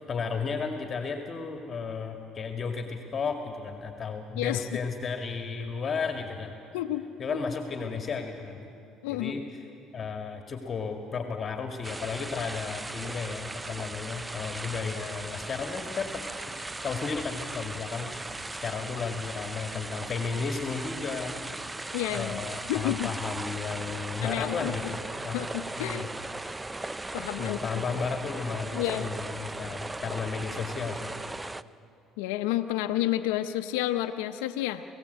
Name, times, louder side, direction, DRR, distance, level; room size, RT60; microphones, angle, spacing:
voice 1, 0.1-6.6 7.2-8.7 9.1-9.4 9.9-16.5 16.8-18.1 18.6-21.5 22.1-25.4 25.8-26.1 27.4-31.1, left 5 dB, 40° left, 4 dB, 2.0 m, -33 dB
voice 2, 4.4-4.7 6.7-7.1 7.3-7.4 9.0-9.3 21.9-22.4 22.7-23.1 24.2-24.7 25.3-26.1 27.1-27.8 28.7-29.1 32.2-34.8, left 14 dB, 85° left, 7 dB, 0.8 m, -30 dB
sound 1, 11.8-31.6, right 2 dB, 15° right, 0.5 m, -38 dB
26.5 x 16.5 x 8.2 m, 2.7 s
supercardioid pair, 75°, 0 cm